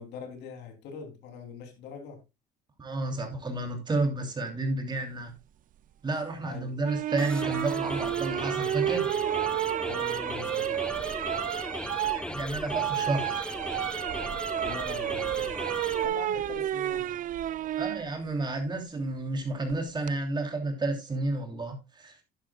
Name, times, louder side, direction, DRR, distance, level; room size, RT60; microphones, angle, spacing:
voice 1, 0.0-2.2 6.4-6.8 9.8-11.0 14.5-15.7 16.0-17.2, left 5 dB, 90° left, 3.1 m, -43 dB
voice 2, 2.8-5.3 6.0-9.1 12.1-13.5 17.8-22.2, right 2 dB, 25° right, 3.0 m, -31 dB
sound 1, 6.8-18.0 19.7-20.1, right 12 dB, 50° right, 0.5 m, -31 dB
sound 2, 7.2-16.1, left 1 dB, 5° left, 0.8 m, -37 dB
11.0 x 11.0 x 2.3 m
cardioid pair, 110°, 17 cm